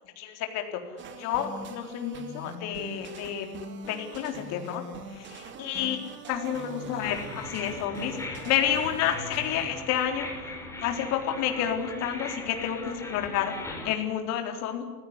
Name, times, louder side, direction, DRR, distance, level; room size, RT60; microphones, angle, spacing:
voice 1, 0.2-0.8 1.1-3.5 3.9-4.8 5.1-6.0 6.3-13.5 13.8-14.8, left 9 dB, 35° left, 4 dB, 4.0 m, -30 dB
sound 1, 1.0-9.7, right 2 dB, 25° right, 2.7 m, -43 dB
sound 2, 7.0-14.0, left 2 dB, 5° left, 4.2 m, -39 dB
28.5 x 16.5 x 9.7 m, 1.2 s
supercardioid pair, 150°, 47 cm